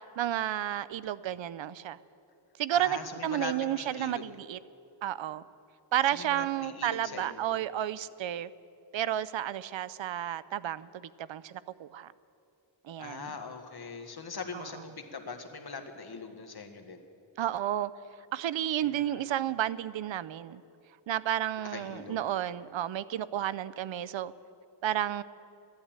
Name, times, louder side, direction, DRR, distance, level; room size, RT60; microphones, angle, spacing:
voice 1, 0.2-2.0 2.6-4.6 5.0-5.4 5.9-8.5 8.9-12.1 12.8-13.3 14.5-14.6 17.4-17.9 18.3-20.6 21.1-24.3 24.8-25.2, right 11 dB, 85° right, 0.5 m, -32 dB
voice 2, 2.7-4.2 6.1-7.5 13.0-17.0 18.8-19.3 21.7-22.2, left 4 dB, 55° left, 1.6 m, -42 dB
14.0 x 11.5 x 8.8 m
cardioid pair, 65°, 44 cm